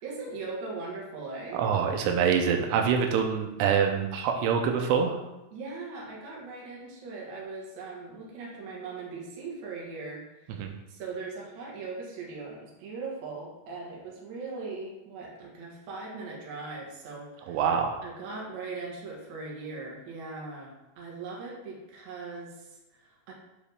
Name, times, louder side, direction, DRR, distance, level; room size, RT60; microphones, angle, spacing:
voice 1, 0.0-1.6 5.5-17.7 18.0-23.3, right 3 dB, 55° right, -3 dB, 2.3 m, -40 dB
voice 2, 1.6-5.2 10.6-10.7 17.5-18.0, right 7 dB, 90° right, 3 dB, 2.8 m, -25 dB
9.4 x 4.2 x 3.5 m, 0.96 s
omnidirectional pair, 4.8 m